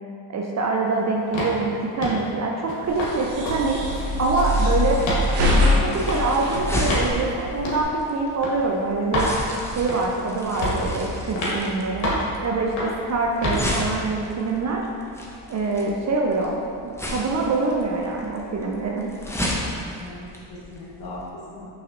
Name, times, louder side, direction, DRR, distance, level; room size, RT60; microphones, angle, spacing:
voice 1, 0.3-3.8 4.2-5.0 5.5-9.3 9.7-12.1 12.4-14.9 15.5-19.1, right 3 dB, 35° right, -1 dB, 0.5 m, -25 dB
sound 1, 1.3-1.6 2.0-2.3 2.7-3.1 3.4-3.6 3.9-4.6 5.0-5.3 6.0-6.2 6.9-7.1 7.6-7.8 8.4-8.6 9.1-9.3 9.9-10.2 10.6-10.9 11.4-11.6 12.0-12.3 12.8-13.0 13.4-13.6, left 1 dB, 65° left, 1.2 m, -27 dB
sound 2, 2.9-7.8, left 1 dB, 75° right, 0.9 m, -24 dB
sound 3, 4.4-21.3, left 1 dB, 5° left, 0.7 m, -34 dB
voice 2, 20.0-21.8, left 1 dB, 45° left, -5 dB, 1.3 m, -39 dB
5.6 x 3.2 x 2.6 m, 2.4 s
hypercardioid pair, 60°, 50 cm